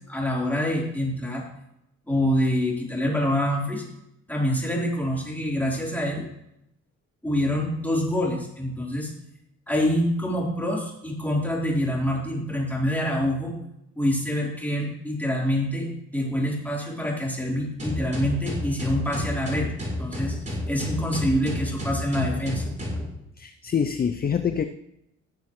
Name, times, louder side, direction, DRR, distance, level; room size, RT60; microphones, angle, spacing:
voice 1, 0.0-1.4 2.1-3.8 4.3-6.3 7.2-9.1 9.7-13.6 13.9-19.7 20.0-20.4 20.7-22.6, equal, 5° left, -4 dB, 4.0 m, -26 dB
sound 1, 17.8-23.1, left 1 dB, 25° right, 3.7 m, -30 dB
voice 2, 23.4-24.7, left 7 dB, 30° left, 9 dB, 0.6 m, -25 dB
16.5 x 6.9 x 3.2 m, 0.81 s
cardioid pair, 90°, 30 cm